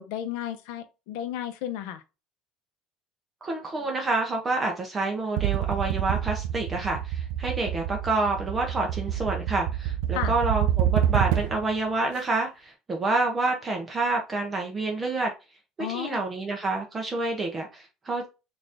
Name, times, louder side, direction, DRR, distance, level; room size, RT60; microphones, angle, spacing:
voice 1, 0.0-2.0 10.1-10.3 15.8-16.2, left 11 dB, 90° left, 0.6 m, -33 dB
voice 2, 3.4-15.3 15.8-18.3, right 3 dB, 15° right, 0.6 m, -28 dB
sound 1, 5.4-11.7, right 11 dB, 85° right, 0.3 m, -27 dB
3.9 x 2.5 x 3.3 m
cardioid pair, 175°, 0 cm